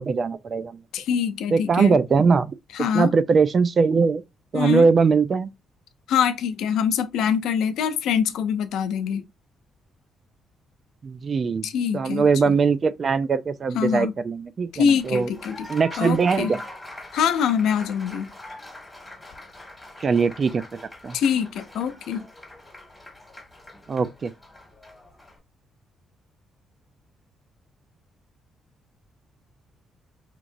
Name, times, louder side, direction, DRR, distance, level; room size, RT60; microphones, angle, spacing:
voice 1, 0.0-0.8 1.5-2.5 2.9-4.2 4.5-5.5 11.0-15.3 15.7-16.6 20.0-21.2 23.9-24.3, right 5 dB, 45° right, 0.4 m, -21 dB
voice 2, 0.9-2.0 2.7-3.1 4.5-4.9 6.1-9.2 11.6-12.5 13.7-14.1 14.7-15.7 16.0-16.5 17.1-18.3 21.1-22.2, left 7 dB, 85° left, 0.5 m, -24 dB
Applause, 15.0-25.4, left 1 dB, 5° left, 1.8 m, -43 dB
3.7 x 2.8 x 2.5 m
cardioid pair, 90°, 0 cm